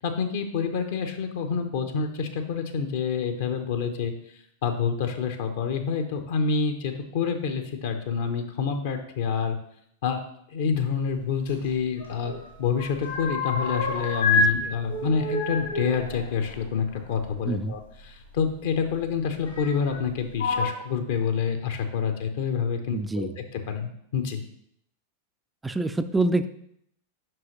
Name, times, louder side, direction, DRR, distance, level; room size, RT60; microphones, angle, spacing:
voice 1, 0.0-4.1 4.6-9.6 10.0-10.2 10.5-12.3 12.6-23.3 23.7-24.4, left 6 dB, 55° left, 6 dB, 0.7 m, -27 dB
sound 1, 11.5-12.4 12.7-14.5 14.8-17.3 18.4-18.5 19.4-20.0 20.3-20.7, left 3 dB, 75° left, 2.0 m, -28 dB
voice 2, 17.4-17.8 22.9-23.3 25.6-26.5, right 2 dB, 10° right, 11 dB, 0.4 m, -26 dB
7.6 x 5.6 x 3.1 m, 0.70 s
figure-of-eight pair, 90°, 0 cm